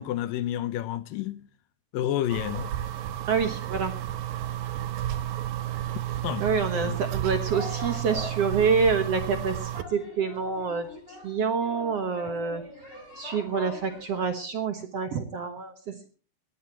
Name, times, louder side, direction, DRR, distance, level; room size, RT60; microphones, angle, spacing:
voice 1, 0.0-1.4 1.9-2.7 6.2-6.5 6.7-7.0, left 12 dB, 80° left, 2.4 m, -30 dB
sound 1, 2.3-9.8, right 12 dB, 80° right, 2.7 m, -32 dB
voice 2, 3.3-3.9 6.4-12.6 13.2-16.1, right 5 dB, 60° right, 1.8 m, -27 dB
sound 2, 7.5-14.2, left 1 dB, 20° left, 7.0 m, -43 dB
19.5 x 17.0 x 3.0 m
omnidirectional pair, 4.1 m